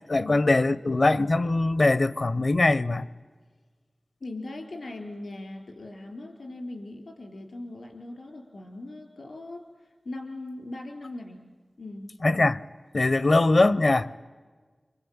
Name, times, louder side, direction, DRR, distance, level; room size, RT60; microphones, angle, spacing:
voice 1, 0.1-3.1 12.2-12.6 12.9-14.1, left 2 dB, 60° left, 0.8 m, -22 dB
voice 2, 4.2-9.6 10.0-11.4 11.8-12.1, left 2 dB, 85° left, 4.3 m, -39 dB
27.0 x 25.0 x 8.9 m
wide cardioid pair, 60°, 0 cm